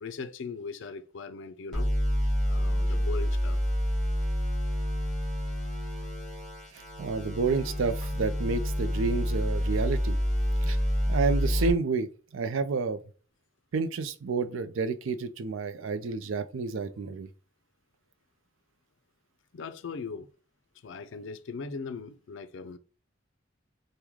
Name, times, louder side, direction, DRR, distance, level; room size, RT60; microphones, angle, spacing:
voice 1, 0.0-1.9 2.2-3.6 19.5-20.3 20.8-22.8, left 4 dB, 70° left, 0.4 m, -39 dB
sound 1, 1.7-11.7, equal, 5° left, 1.4 m, -28 dB
voice 2, 6.7-10.2 10.6-10.8 11.1-13.0 13.7-17.3, right 4 dB, 85° right, 0.4 m, -30 dB
3.6 x 2.2 x 3.0 m
head